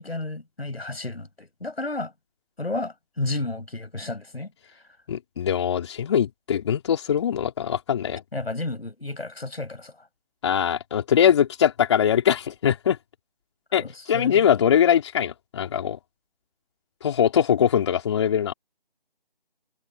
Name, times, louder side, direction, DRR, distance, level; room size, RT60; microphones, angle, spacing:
voice 1, 0.0-2.1 2.6-4.5 8.3-9.9 13.8-13.9 14.1-14.4, left 2 dB, 90° left, 7.2 m, -32 dB
voice 2, 5.1-8.2 10.4-13.0 13.7-16.0 17.0-18.5, left 9 dB, 30° left, 4.6 m, -22 dB
figure-of-eight pair, 165°, 30 cm